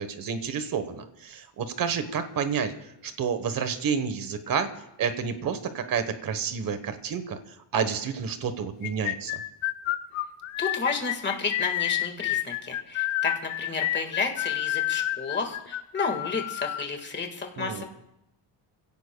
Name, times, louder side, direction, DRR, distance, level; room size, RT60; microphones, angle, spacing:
voice 1, 0.0-2.7 3.0-4.7 5.0-7.4 7.7-9.4 17.6-17.8, right 6 dB, 45° right, 10 dB, 1.2 m, -29 dB
sound 1, 8.8-16.9, left 14 dB, 80° left, 0.8 m, -29 dB
voice 2, 10.6-17.9, left 4 dB, 25° left, 3 dB, 1.7 m, -31 dB
27.5 x 16.5 x 2.3 m, 0.85 s
cardioid pair, 170°, 47 cm